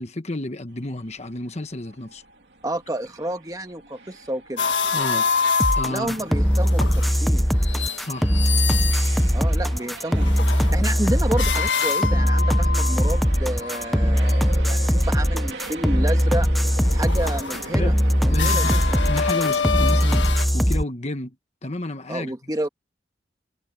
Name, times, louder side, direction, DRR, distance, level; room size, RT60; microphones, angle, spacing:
voice 1, 0.0-2.2 4.9-5.3 5.8-6.2 8.0-8.3 10.8-10.9 17.7-17.9 18.3-18.8 19.1-20.2 20.5-21.4 21.6-22.3, left 2 dB, 35° left, 1.3 m, -30 dB
sound 1, 0.7-20.1, right 2 dB, 65° right, 3.0 m, -41 dB
voice 2, 2.6-4.7 5.9-7.4 9.3-16.5 16.9-17.9 18.2-19.0 22.1-22.7, right 1 dB, 20° right, 1.6 m, -30 dB
sound 2, 4.6-7.2 7.5-14.6 15.8-16.3 16.7-20.4, left 5 dB, 80° left, 1.6 m, -27 dB
sound 3, 5.6-20.8, equal, ahead, 0.5 m, -20 dB
head